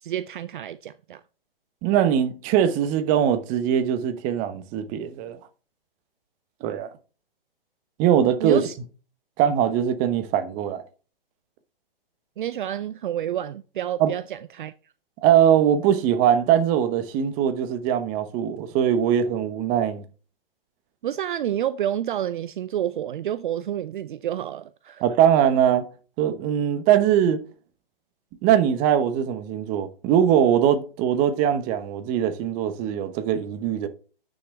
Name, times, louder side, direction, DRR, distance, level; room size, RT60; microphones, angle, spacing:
voice 1, 0.0-1.2 8.4-8.8 12.4-14.7 21.0-25.0, right 11 dB, 60° right, 0.5 m, -29 dB
voice 2, 1.8-5.4 6.6-6.9 8.0-8.6 9.4-10.8 14.0-14.1 15.2-20.0 25.0-25.9 26.2-27.4 28.4-33.9, right 9 dB, 25° right, 1.1 m, -21 dB
9.3 x 6.5 x 3.4 m
hypercardioid pair, 125°, 29 cm